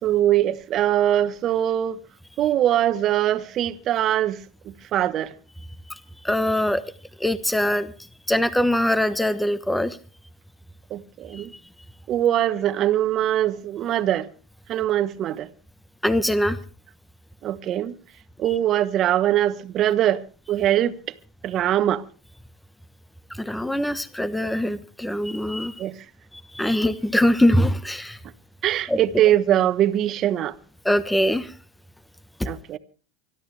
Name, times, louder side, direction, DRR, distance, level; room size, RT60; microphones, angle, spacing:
voice 1, 0.0-2.0 2.4-4.4 4.9-5.3 10.9-11.5 12.1-14.3 14.7-15.5 17.4-17.9 18.4-20.2 20.5-20.9 21.4-22.0 25.8-25.9 28.6-30.5 32.4-32.8, right 12 dB, 45° right, 1.3 m, -22 dB
voice 2, 6.2-6.8 7.2-7.9 8.3-10.0 11.3-11.4 16.0-16.6 23.4-25.7 26.5-28.2 28.9-29.0 30.8-31.5, left 1 dB, 5° left, 1.1 m, -22 dB
25.0 x 12.5 x 3.4 m
hypercardioid pair, 90°, 0 cm